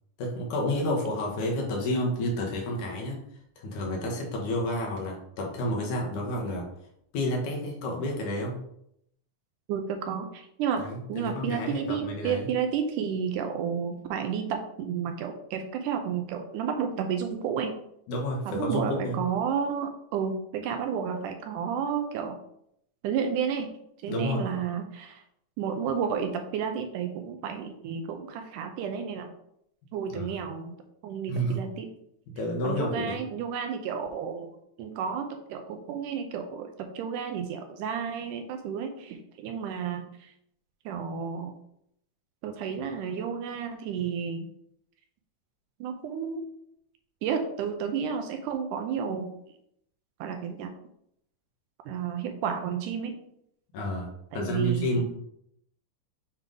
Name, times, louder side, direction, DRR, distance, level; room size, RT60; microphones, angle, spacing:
voice 1, 0.2-3.2 3.6-6.7 7.1-8.6 10.7-12.5 18.1-19.2 24.1-24.4 30.1-30.3 31.3-31.6 32.4-33.2 53.7-54.1 54.3-55.0, left 1 dB, 70° left, 0 dB, 2.5 m, -30 dB
voice 2, 9.7-17.7 18.5-22.4 23.0-23.7 24.0-25.2 25.6-29.3 29.9-30.8 31.0-31.9 32.6-34.5 34.8-40.3 40.9-41.5 42.4-44.5 45.8-46.4 47.2-49.3 50.2-50.7 51.9-53.2 54.3-55.0, right 7 dB, 80° right, 5 dB, 2.0 m, -31 dB
7.3 x 3.4 x 3.8 m, 0.74 s
omnidirectional pair, 3.8 m